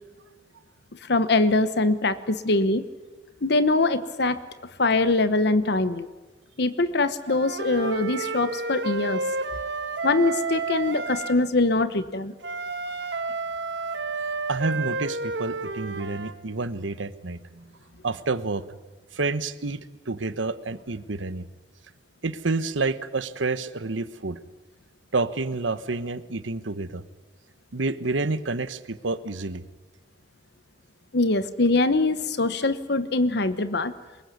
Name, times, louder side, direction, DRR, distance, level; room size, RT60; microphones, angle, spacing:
voice 1, 1.0-2.8 3.4-4.4 4.8-6.1 6.6-9.2 10.0-12.3 31.1-33.9, left 2 dB, 60° left, 12 dB, 1.0 m, -23 dB
Wind instrument woodwind instrument, 7.3-11.4 12.4-16.3, right 3 dB, 65° right, 1.6 m, -31 dB
voice 2, 14.5-17.7 18.0-18.6 19.1-19.8 20.1-21.5 22.2-24.4 25.1-27.0 27.7-29.6, right 3 dB, 90° right, 13 dB, 1.2 m, -29 dB
23.5 x 21.0 x 9.5 m, 1.3 s
head